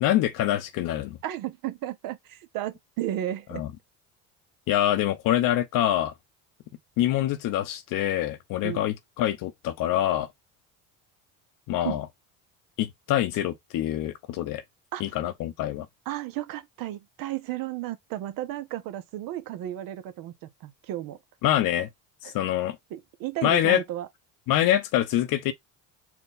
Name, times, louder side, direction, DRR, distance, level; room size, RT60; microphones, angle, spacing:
voice 1, 0.0-1.2 3.5-3.7 4.7-6.1 7.0-10.3 11.7-12.1 12.8-14.6 15.0-15.9 21.4-21.9 22.2-22.8 23.4-23.8 24.5-25.5, left 12 dB, 65° left, 0.9 m, -25 dB
voice 2, 1.2-3.6 8.6-8.9 11.8-12.0 14.9-15.0 16.1-21.2 22.2-22.3 22.9-24.1, right 13 dB, 65° right, 0.9 m, -33 dB
4.4 x 2.4 x 3.9 m
supercardioid pair, 100°, 36 cm